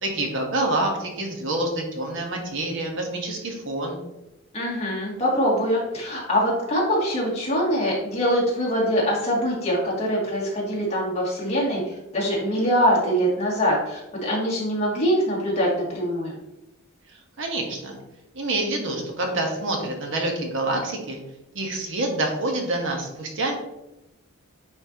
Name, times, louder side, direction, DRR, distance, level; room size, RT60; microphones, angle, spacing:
voice 1, 0.0-4.0 17.4-18.0 18.3-21.2 21.5-23.5, right 2 dB, 60° right, 1 dB, 1.4 m, -27 dB
voice 2, 4.5-16.3, equal, 30° left, -5 dB, 2.4 m, -23 dB
9.3 x 4.4 x 3.0 m, 0.93 s
head